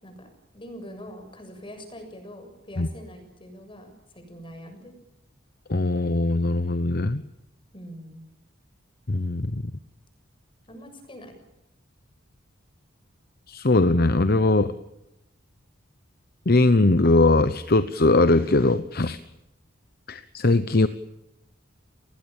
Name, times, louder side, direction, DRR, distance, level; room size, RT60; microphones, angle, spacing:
voice 1, 0.0-4.9 7.7-8.3 10.7-11.3, equal, 25° left, 6 dB, 7.1 m, -43 dB
voice 2, 5.7-7.2 9.1-9.7 13.5-14.7 16.5-19.2 20.1-20.9, left 2 dB, 50° left, 12 dB, 0.9 m, -20 dB
30.0 x 20.5 x 7.3 m, 0.88 s
head